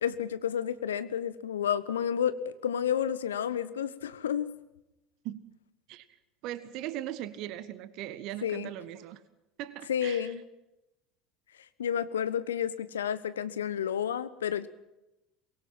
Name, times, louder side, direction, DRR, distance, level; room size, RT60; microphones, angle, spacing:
voice 1, 0.0-4.5 8.4-8.7 9.9-10.4 11.8-14.7, left 9 dB, 75° left, 15 dB, 1.2 m, -30 dB
voice 2, 6.4-9.2 9.6-10.3, right 13 dB, 55° right, 14 dB, 1.5 m, -39 dB
24.0 x 22.5 x 6.0 m, 0.94 s
figure-of-eight pair, 65°, 0 cm